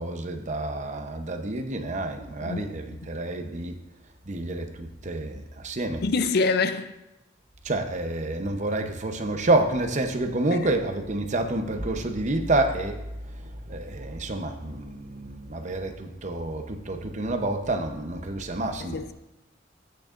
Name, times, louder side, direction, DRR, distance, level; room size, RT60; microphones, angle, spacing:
voice 1, 0.0-3.8 4.3-6.0 7.6-19.0, right 2 dB, 40° right, 0.7 m, -28 dB
voice 2, 6.0-7.0 18.8-19.1, left 4 dB, 55° left, 0.5 m, -26 dB
15.0 x 6.4 x 2.5 m
head